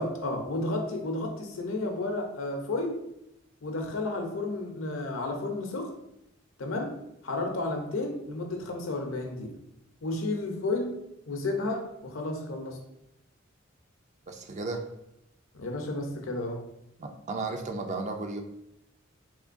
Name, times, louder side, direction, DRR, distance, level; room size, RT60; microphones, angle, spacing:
voice 1, 0.0-3.0 3.6-5.9 6.6-6.9 7.2-9.5 10.0-10.9 11.3-12.8 15.5-16.6, left 2 dB, 75° left, 3 dB, 0.6 m, -32 dB
voice 2, 14.3-14.8 17.0-18.4, right 3 dB, 35° right, 5 dB, 0.4 m, -34 dB
3.6 x 3.0 x 2.5 m, 0.83 s
head